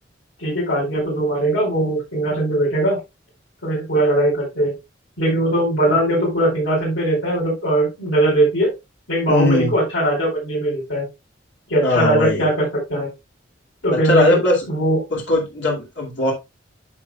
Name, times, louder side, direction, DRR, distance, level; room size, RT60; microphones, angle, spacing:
voice 1, 0.4-3.0 3.6-4.7 5.2-8.7 9.1-11.0 11.7-13.1 13.8-14.4 14.7-15.0, right 1 dB, 90° left, -8 dB, 4.5 m, -20 dB
voice 2, 9.3-9.7 11.8-12.5 13.9-14.6 15.1-16.3, left 2 dB, 70° left, -2 dB, 2.5 m, -19 dB
9.9 x 6.6 x 2.3 m, 0.23 s
head